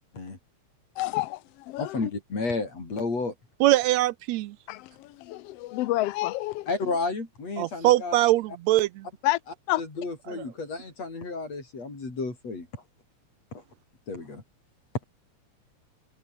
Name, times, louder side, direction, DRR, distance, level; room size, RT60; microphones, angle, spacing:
voice 1, 1.0-2.1 4.7-6.7 9.2-9.4 9.7-9.8, left 17 dB, 75° left, 1.5 m, -29 dB
voice 2, 1.8-3.3 6.7-8.2 9.8-12.7 13.5-13.6 14.1-14.4, left 3 dB, 60° left, 7.7 m, -32 dB
voice 3, 3.6-4.6 7.6-9.1 10.3-10.4, right 16 dB, 80° right, 1.8 m, -22 dB
omnidirectional pair, 3.3 m